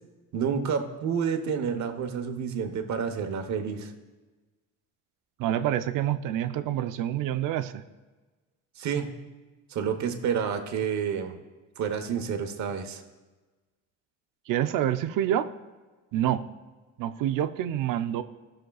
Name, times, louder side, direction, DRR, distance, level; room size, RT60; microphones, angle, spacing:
voice 1, 0.3-3.9 8.8-9.2 9.7-11.4 11.8-13.0, right 7 dB, 55° right, 7 dB, 1.1 m, -29 dB
voice 2, 5.4-7.8 14.5-15.5 16.1-16.5 17.0-18.2, right 11 dB, 70° right, 11 dB, 0.6 m, -27 dB
16.0 x 6.4 x 2.3 m, 1.2 s
cardioid pair, 125°, 34 cm